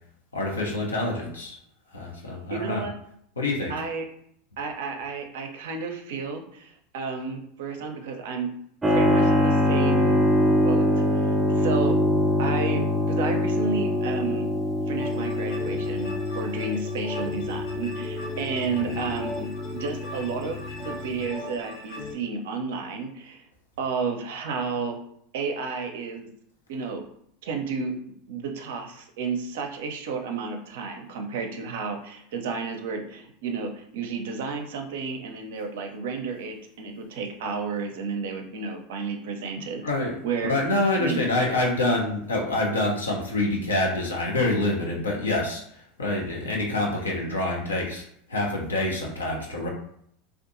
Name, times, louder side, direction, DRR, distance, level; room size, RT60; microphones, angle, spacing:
voice 1, 0.3-1.6 1.9-2.8 3.4-3.7 18.8-19.0 39.8-40.1 40.5-45.6 46.0-48.0 48.3-49.7, left 2 dB, 90° left, -2 dB, 0.6 m, -26 dB
voice 2, 2.5-2.9 3.7-4.0 4.6-8.5 8.9-10.2 10.6-10.9 11.1-11.9 12.4-14.5 14.9-23.4 23.8-25.0 25.3-26.3 26.7-27.0 27.4-39.8 40.2-40.5 41.0-41.2, right 5 dB, 70° right, 4 dB, 0.5 m, -32 dB
Keyboard (musical), 8.8-21.2, left 1 dB, 15° right, 0.4 m, -24 dB
sound 1, 15.0-22.1, left 1 dB, 55° left, 1.0 m, -39 dB
2.6 x 2.3 x 2.5 m, 0.69 s
hypercardioid pair, 85°, 0 cm